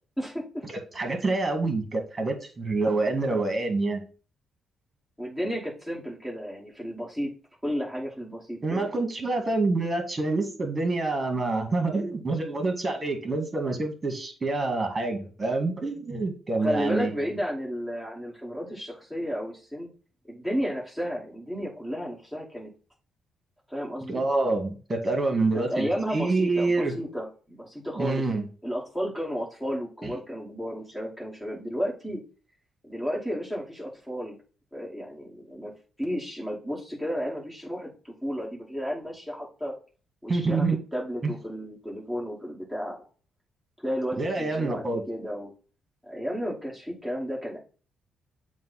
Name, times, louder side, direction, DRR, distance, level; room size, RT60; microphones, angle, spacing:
voice 1, 0.2-0.6 5.2-7.3 7.6-8.9 16.6-19.9 20.2-22.7 23.7-24.2 25.5-28.2 28.6-32.2 32.8-34.4 34.7-35.7 36.0-39.7 40.2-40.7 40.9-43.0 43.8-45.5 46.0-47.6, equal, 10° left, -4 dB, 2.6 m, -32 dB
voice 2, 0.7-4.0 8.6-17.2 24.1-26.9 28.0-28.4 30.0-30.1 40.3-40.8 41.2-41.3 44.2-45.0, right 3 dB, 25° right, 5 dB, 2.0 m, -27 dB
7.4 x 2.7 x 5.7 m, 0.37 s
cardioid pair, 90°, 0 cm